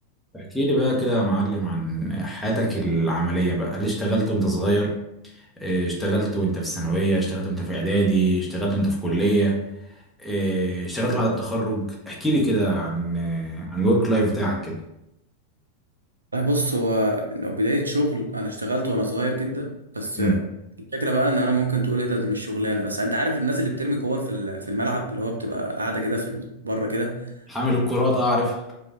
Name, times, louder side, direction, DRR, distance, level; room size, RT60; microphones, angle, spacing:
voice 1, 0.3-5.0 5.3-9.6 10.2-14.8 20.2-20.4 27.5-28.6, right 1 dB, 5° left, -4 dB, 0.9 m, -23 dB
voice 2, 16.3-20.4 20.9-27.2, right 1 dB, 75° right, 3 dB, 0.6 m, -25 dB
4.9 x 2.4 x 3.6 m, 0.85 s
figure-of-eight pair, 90°, 0 cm